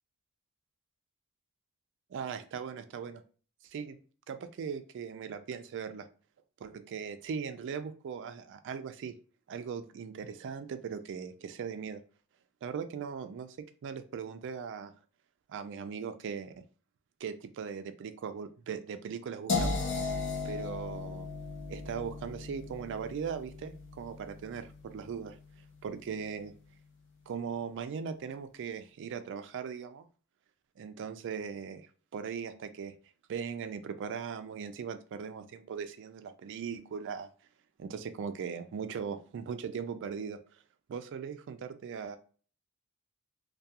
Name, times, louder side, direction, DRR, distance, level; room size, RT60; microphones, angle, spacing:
voice 1, 2.1-3.2 3.7-4.0 4.3-6.1 6.6-9.1 9.5-12.0 12.6-14.9 15.5-16.5 17.2-19.8 20.4-21.3 21.7-25.4 25.8-26.5 27.3-30.1 30.8-31.9 32.1-32.9 33.3-37.3 37.8-40.4 40.9-42.2, right 6 dB, 55° right, 10 dB, 0.3 m, -39 dB
sound 1, 19.5-25.4, left 3 dB, 55° left, 0.6 m, -36 dB
2.3 x 2.2 x 2.7 m, 0.40 s
head